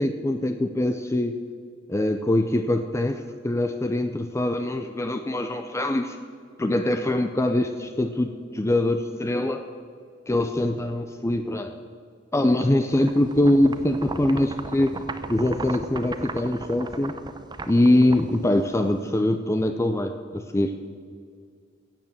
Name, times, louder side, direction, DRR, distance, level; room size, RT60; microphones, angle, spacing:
voice 1, 0.0-1.4 1.9-6.2 6.6-9.7 10.3-11.8 12.3-15.0 15.3-17.1 17.7-20.7, left 1 dB, 15° left, 7 dB, 0.5 m, -23 dB
sound 1, 12.9-19.0, right 2 dB, 25° right, 0.7 m, -36 dB
16.0 x 8.1 x 7.4 m, 2.1 s
head